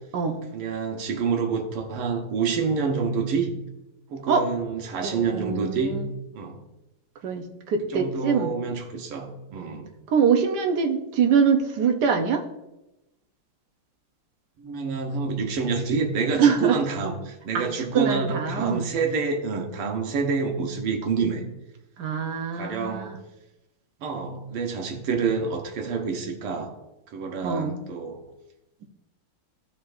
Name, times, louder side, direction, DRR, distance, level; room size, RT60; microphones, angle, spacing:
voice 1, 0.5-3.5 4.1-6.0 6.3-6.6 7.9-9.9 14.6-21.4 22.5-23.2 24.0-26.7 27.1-28.2, right 5 dB, 80° right, 3 dB, 1.9 m, -27 dB
voice 2, 5.0-6.1 7.2-8.5 10.1-12.4 16.4-16.8 17.5-18.8 22.0-23.2 27.4-27.7, right 6 dB, 65° right, 5 dB, 1.2 m, -24 dB
14.0 x 5.1 x 2.6 m, 0.94 s
omnidirectional pair, 2.4 m